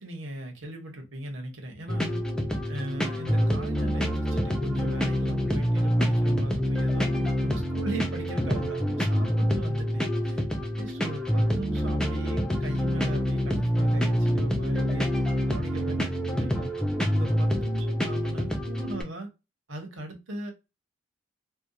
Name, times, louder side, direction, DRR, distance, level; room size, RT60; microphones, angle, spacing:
voice 1, 0.0-2.2 2.7-10.4 10.8-15.1 15.5-16.7 17.1-19.3 19.7-20.5, right 1 dB, 80° right, 0.9 m, -38 dB
sound 1, 1.9-19.0, equal, 5° left, 0.3 m, -26 dB
2.8 x 2.2 x 2.2 m
head